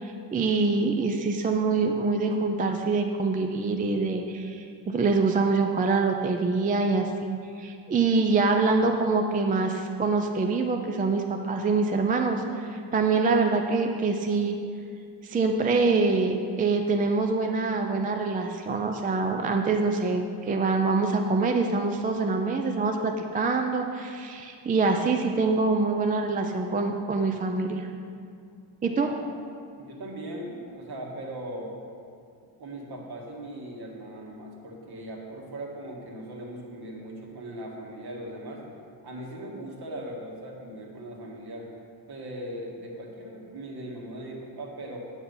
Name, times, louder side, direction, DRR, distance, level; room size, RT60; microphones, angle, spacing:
voice 1, 0.0-14.6 15.2-27.9 28.8-29.1, right 3 dB, 20° right, 4 dB, 0.3 m, -25 dB
voice 2, 29.7-31.8 32.6-38.6 39.0-41.7 42.1-45.0, right 1 dB, 50° right, -1 dB, 1.9 m, -39 dB
8.6 x 8.0 x 5.5 m, 2.3 s
cardioid pair, 160°, 47 cm